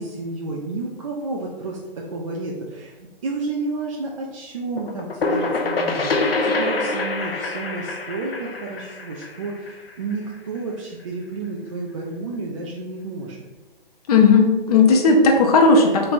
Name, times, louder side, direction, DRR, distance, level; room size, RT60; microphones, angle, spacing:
voice 1, 0.0-13.4, right 3 dB, 35° right, -2 dB, 0.5 m, -31 dB
sound 1, 4.8-10.3, left 3 dB, 80° left, 0.7 m, -25 dB
voice 2, 14.1-16.1, left 4 dB, 40° left, 1 dB, 0.6 m, -15 dB
3.3 x 3.3 x 4.0 m, 1.2 s
hypercardioid pair, 145°, 29 cm